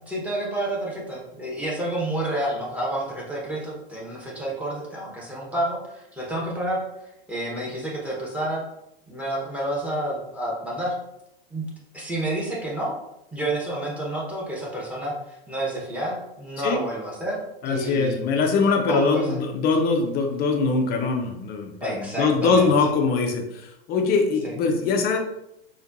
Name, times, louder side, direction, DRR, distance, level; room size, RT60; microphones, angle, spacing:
voice 1, 0.1-6.8 7.3-8.6 9.1-10.9 11.5-11.6 11.9-13.0 13.3-18.2 18.9-19.4 21.8-22.7 24.4-24.5, right 1 dB, 5° right, -5 dB, 1.1 m, -29 dB
voice 2, 17.6-25.2, left 4 dB, 30° left, 3 dB, 0.7 m, -22 dB
4.3 x 2.5 x 2.6 m, 0.85 s
hypercardioid pair, 115°, 31 cm